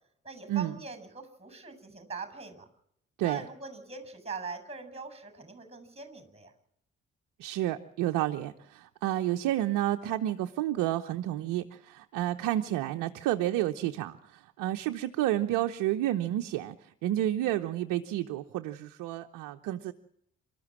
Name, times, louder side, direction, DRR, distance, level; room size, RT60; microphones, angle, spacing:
voice 1, 0.2-2.7 3.2-6.5, right 4 dB, 15° right, 10 dB, 7.3 m, -42 dB
voice 2, 7.4-19.9, right 13 dB, 75° right, 5 dB, 0.9 m, -30 dB
27.5 x 13.5 x 7.5 m, 0.71 s
hypercardioid pair, 40°, 35 cm